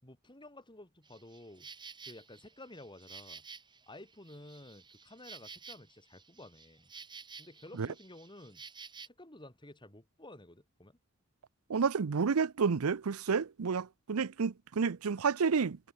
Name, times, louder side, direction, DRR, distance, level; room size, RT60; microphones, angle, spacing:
voice 1, 0.0-1.7 2.0-3.4 3.9-6.9 7.4-8.6 9.0-11.0, left 1 dB, 20° left, 6.3 m, -52 dB
Insect, 1.0-9.1, right 5 dB, 20° right, 4.9 m, -52 dB
voice 2, 11.7-15.8, right 5 dB, 90° right, 0.6 m, -30 dB
head